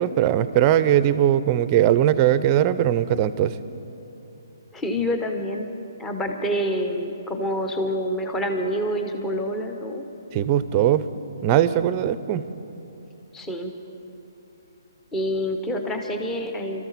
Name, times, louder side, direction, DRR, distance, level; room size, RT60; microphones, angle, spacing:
voice 1, 0.0-3.5 10.3-11.1 11.4-12.4, right 11 dB, 30° right, 14 dB, 0.6 m, -20 dB
voice 2, 4.7-5.7 6.0-10.1 13.3-13.7 15.1-16.9, equal, 10° left, 4 dB, 1.0 m, -27 dB
24.0 x 14.0 x 4.2 m, 2.9 s
hypercardioid pair, 150°, 2 cm